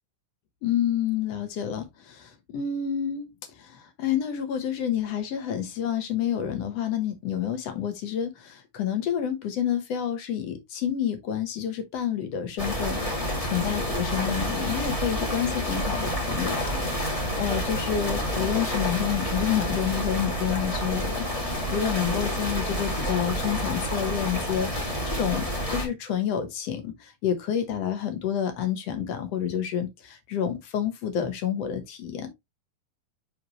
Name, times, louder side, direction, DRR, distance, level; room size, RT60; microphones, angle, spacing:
voice 1, 0.6-13.2 13.5-32.3, left 9 dB, 60° left, 1.8 m, -29 dB
sound 1, 12.6-25.8, equal, 15° left, 1.2 m, -29 dB
5.9 x 5.5 x 3.0 m
omnidirectional pair, 4.1 m